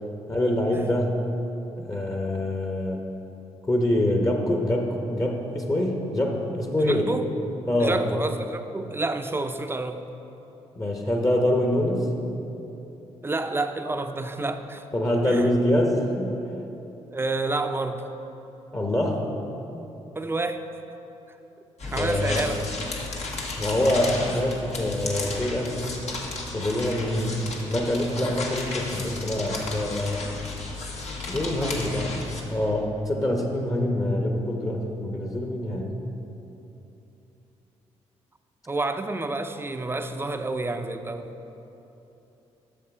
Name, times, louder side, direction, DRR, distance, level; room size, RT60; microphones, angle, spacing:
voice 1, 0.3-1.2 1.8-3.1 3.7-7.1 7.7-8.0 10.8-12.1 14.9-16.4 18.7-19.3 22.0-22.4 23.6-25.8 26.5-27.4 27.7-30.2 31.3-32.1 32.5-35.9, left 1 dB, 25° left, 2 dB, 1.0 m, -25 dB
voice 2, 6.8-7.3 7.8-10.0 13.2-14.9 15.3-15.5 17.1-18.1 20.2-20.6 21.8-22.6 31.6-32.0 38.7-41.3, right 2 dB, 20° right, 8 dB, 0.5 m, -29 dB
sound 1, 21.8-32.4, left 3 dB, 60° left, 1.2 m, -34 dB
7.3 x 6.5 x 4.8 m, 3.0 s
supercardioid pair, 55°, 13 cm